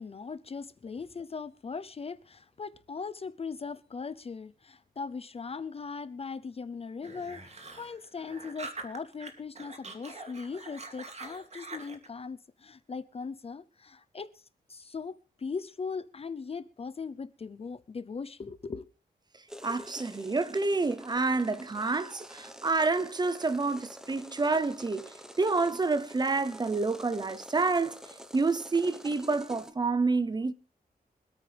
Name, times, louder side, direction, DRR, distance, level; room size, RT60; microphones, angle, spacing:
voice 1, 0.0-14.4 14.7-18.9, left 5 dB, 35° left, 0.6 m, -39 dB
sound 1, 7.0-9.3 9.5-12.1, right 3 dB, 40° right, 2.6 m, -44 dB
sound 2, 19.5-29.7, equal, 5° right, 1.1 m, -48 dB
voice 2, 19.6-25.1 25.4-28.0 28.3-30.5, right 3 dB, 25° right, 0.8 m, -28 dB
25.5 x 9.0 x 3.4 m
wide cardioid pair, 140°, 17 cm